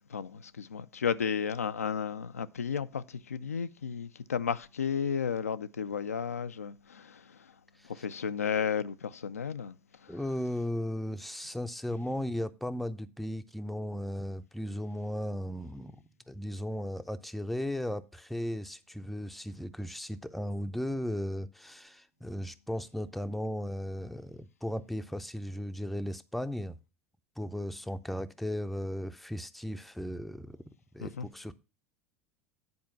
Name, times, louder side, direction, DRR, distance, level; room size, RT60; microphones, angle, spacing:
voice 1, 0.1-7.5 7.8-10.2 31.0-31.3, left 7 dB, 85° left, 0.4 m, -33 dB
voice 2, 10.1-26.8 27.4-30.6 30.9-31.5, equal, ahead, 0.5 m, -36 dB
9.5 x 4.4 x 5.4 m
figure-of-eight pair, 75°, 8 cm